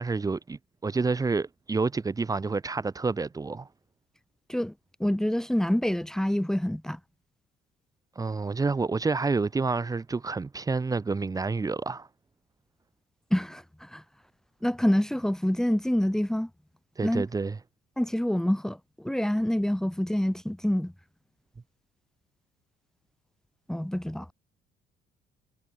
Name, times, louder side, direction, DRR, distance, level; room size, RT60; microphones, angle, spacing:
voice 1, 0.0-3.7 8.1-12.1 17.0-17.6, right 4 dB, 20° right, 1.5 m, -28 dB
voice 2, 5.0-7.0 13.3-14.0 14.6-16.5 17.0-17.2 18.0-20.9 23.7-24.3, equal, 5° left, 1.6 m, -27 dB
cardioid pair, 110°, 17 cm